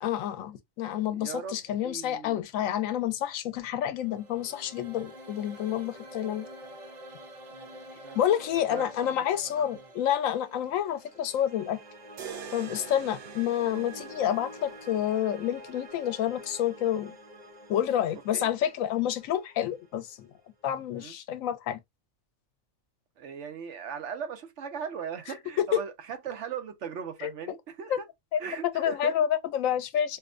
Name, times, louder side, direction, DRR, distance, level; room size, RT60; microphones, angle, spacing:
voice 1, 0.0-6.4 8.1-11.8 12.5-17.1 17.7-20.3 20.6-21.8 25.7-25.8 27.2-27.3 27.9-28.0 28.3-28.4 28.7-30.2, left 10 dB, 85° left, 1.0 m, -29 dB
voice 2, 1.1-2.4 7.5-7.7 8.0-8.4 8.7-9.1 9.5-9.6 18.3-18.5 20.9-21.1 23.2-28.0 28.4-29.1, right 7 dB, 65° right, 0.9 m, -39 dB
sound 1, 3.6-20.7, equal, 45° right, 0.6 m, -48 dB
sound 2, 12.2-16.2, right 7 dB, 85° right, 1.1 m, -46 dB
4.3 x 2.1 x 2.4 m
omnidirectional pair, 1.4 m